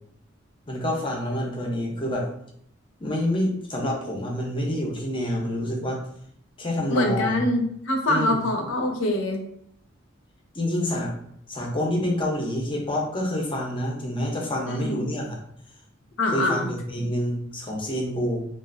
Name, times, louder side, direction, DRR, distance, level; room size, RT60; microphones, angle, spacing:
voice 1, 0.7-2.3 3.0-6.0 6.6-7.4 8.1-8.4 10.5-11.1 11.5-15.4 16.3-18.5, left 1 dB, 25° left, 0 dB, 0.6 m, -27 dB
voice 2, 6.9-9.4 14.7-15.0 16.2-16.7, left 1 dB, 75° left, 2 dB, 0.6 m, -24 dB
3.0 x 2.4 x 2.5 m, 0.68 s
head